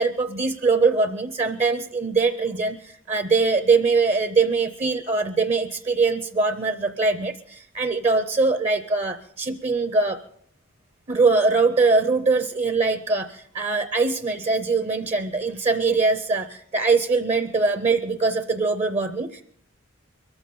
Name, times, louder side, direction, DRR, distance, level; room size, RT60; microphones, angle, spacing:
voice 1, 0.0-10.2 11.1-19.4, right 4 dB, 30° right, 10 dB, 0.5 m, -22 dB
23.5 x 14.0 x 3.8 m, 0.63 s
head